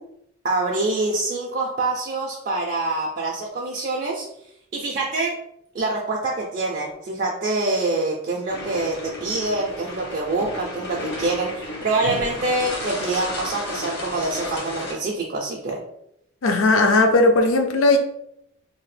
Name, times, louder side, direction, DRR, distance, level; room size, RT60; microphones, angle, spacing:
voice 1, 0.4-4.3 4.7-5.3 5.7-15.8, right 2 dB, 40° right, -1 dB, 0.4 m, -25 dB
sound 1, 8.5-14.9, left 1 dB, 50° left, 0.8 m, -33 dB
voice 2, 16.4-18.0, left 2 dB, 70° left, 5 dB, 0.4 m, -17 dB
2.7 x 2.0 x 3.2 m, 0.76 s
head